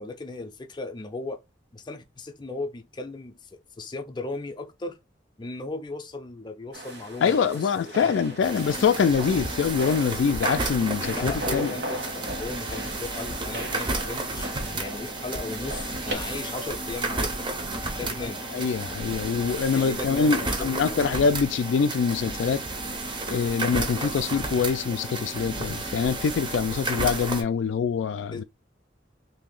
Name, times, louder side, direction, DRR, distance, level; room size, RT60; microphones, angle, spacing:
voice 1, 0.0-1.4 1.7-5.0 5.4-8.4 11.1-14.5 14.8-17.3 18.0-18.4 19.7-21.0 28.3-28.4, left 2 dB, 25° left, 0.5 m, -36 dB
sound 1, 6.7-16.1, right 1 dB, 60° right, 1.3 m, -38 dB
voice 2, 7.2-11.7 18.5-22.7 23.3-28.4, left 6 dB, 80° left, 0.3 m, -24 dB
sound 2, 8.4-27.4, right 2 dB, 25° right, 0.6 m, -32 dB
sound 3, 8.7-25.5, equal, 80° right, 1.5 m, -50 dB
2.8 x 2.7 x 3.8 m
head